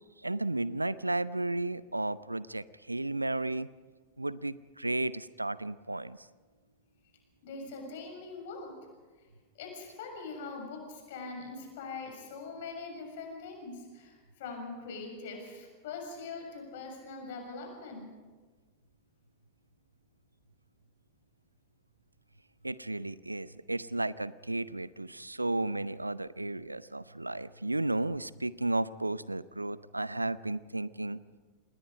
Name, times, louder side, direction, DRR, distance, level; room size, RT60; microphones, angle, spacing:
voice 1, 0.2-3.7 4.2-6.3 22.6-31.2, right 2 dB, 85° right, 19 dB, 0.5 m, -33 dB
voice 2, 7.4-8.8 9.6-18.1, left 4 dB, 55° left, 2 dB, 6.9 m, -42 dB
27.5 x 20.0 x 5.3 m, 1.4 s
figure-of-eight pair, 90°, 0 cm